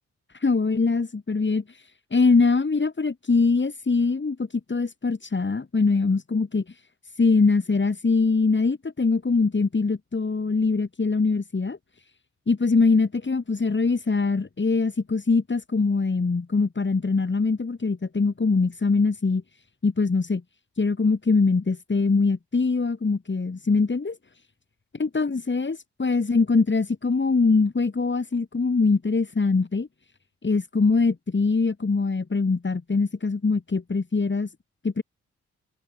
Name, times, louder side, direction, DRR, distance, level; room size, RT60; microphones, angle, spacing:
voice 1, 0.3-6.8 7.2-11.8 12.5-19.4 19.8-20.4 20.8-24.2 25.0-29.9 30.4-34.5 34.8-35.0, left 4 dB, 40° left, 6.7 m, -23 dB
supercardioid pair, 45°, 30 cm